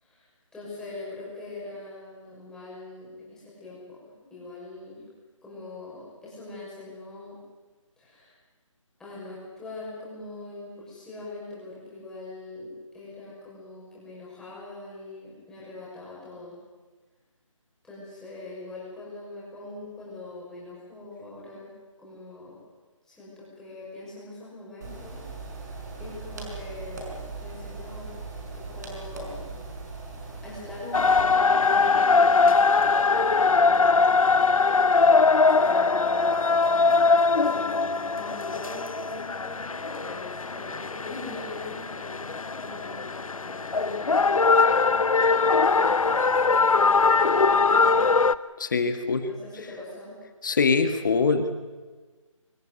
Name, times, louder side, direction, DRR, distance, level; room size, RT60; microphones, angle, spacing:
voice 1, 0.0-5.0 5.4-7.4 8.0-8.3 9.0-16.6 17.8-21.7 22.0-22.6 23.1-25.2 26.0-28.1 28.5-29.5 30.4-34.1 35.6-45.6 46.3-46.9 48.6-48.7 49.3-50.2, left 2 dB, 5° left, -7 dB, 6.2 m, -42 dB
sound 1, 24.8-31.2, right 3 dB, 30° right, 5.0 m, -39 dB
sound 2, 30.9-48.4, left 4 dB, 80° left, 0.9 m, -21 dB
voice 2, 48.6-49.3 50.4-51.5, left 4 dB, 35° left, 9 dB, 1.7 m, -23 dB
24.5 x 16.0 x 9.6 m, 1.3 s
figure-of-eight pair, 165°, 17 cm